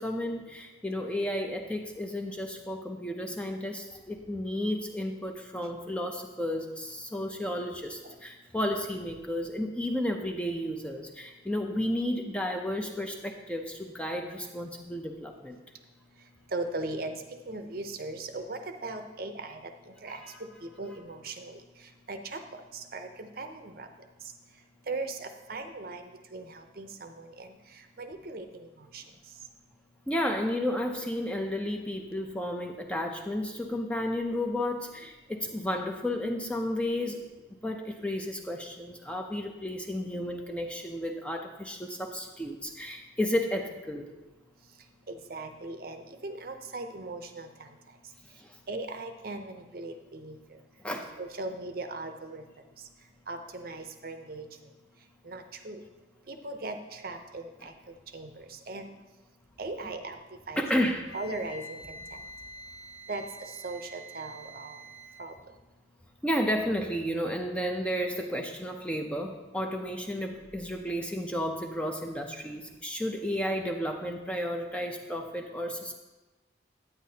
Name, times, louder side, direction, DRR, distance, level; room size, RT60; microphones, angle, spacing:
voice 1, 0.0-15.6 20.1-20.4 30.1-37.3 37.6-44.1 48.4-48.6 50.8-51.1 57.6-57.7 60.6-61.1 66.2-75.9, left 1 dB, 5° left, 3 dB, 0.5 m, -32 dB
voice 2, 16.5-17.2 17.5-19.6 20.0-20.2 20.8-21.6 22.1-23.9 24.9-26.0 26.3-27.5 28.0-28.7 28.9-29.0 45.1-47.5 48.7-50.4 51.2-52.4 53.3-54.4 55.3-55.8 56.3-57.7 58.1-58.3 58.7-58.9 59.6-60.2 60.5-60.7 61.1-62.0 63.1-63.2 63.6-64.8 65.2-65.3, right 2 dB, 50° right, 6 dB, 0.6 m, -38 dB
Wind instrument woodwind instrument, 61.1-65.3, right 1 dB, 50° left, 0.8 m, -46 dB
9.6 x 9.1 x 2.8 m, 1.1 s
head